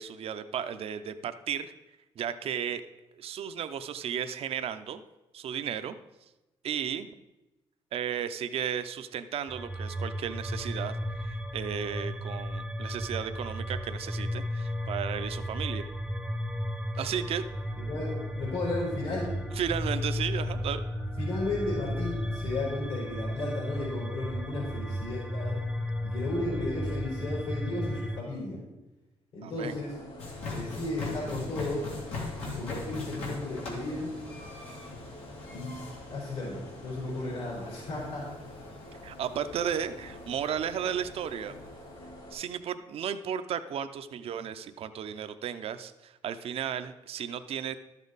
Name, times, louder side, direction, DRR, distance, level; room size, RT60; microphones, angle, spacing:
voice 1, 0.0-1.7 2.2-2.9 3.1-5.0 5.3-5.9 6.6-7.1 7.9-10.9 11.2-15.8 16.9-17.4 19.5-20.8 29.4-29.8 39.0-41.5 42.3-47.8, right 8 dB, 70° right, 10 dB, 0.6 m, -34 dB
sound 1, 9.5-28.2, equal, 5° right, 0.7 m, -34 dB
voice 2, 17.8-19.4 21.2-25.6 26.0-28.6 29.3-30.0 30.5-31.9 32.4-34.1 35.5-35.8 36.1-38.3, left 2 dB, 70° left, -6 dB, 4.2 m, -34 dB
sound 2, 29.5-42.3, left 1 dB, 55° left, 3.1 m, -48 dB
sound 3, 30.2-42.2, left 3 dB, 90° left, 2.5 m, -41 dB
12.5 x 7.3 x 4.0 m, 1.0 s
cardioid pair, 105°, 10 cm